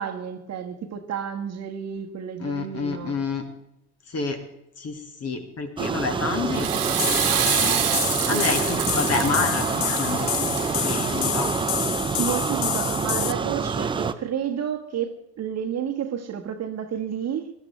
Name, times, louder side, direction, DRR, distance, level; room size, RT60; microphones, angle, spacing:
voice 1, 0.0-3.2 12.2-17.5, right 8 dB, 35° right, 1.5 m, -31 dB
voice 2, 2.4-3.5 4.1-4.4 4.8-7.0 7.3-11.5, left 4 dB, 30° left, 2.1 m, -29 dB
sound 1, 5.8-14.1, right 5 dB, 10° right, 0.5 m, -27 dB
Water / Toilet flush, 6.3-11.6, right 9 dB, 80° right, 1.7 m, -28 dB
sound 2, 7.0-13.3, left 13 dB, 75° left, 0.8 m, -29 dB
20.5 x 12.0 x 3.3 m
figure-of-eight pair, 70°, 46 cm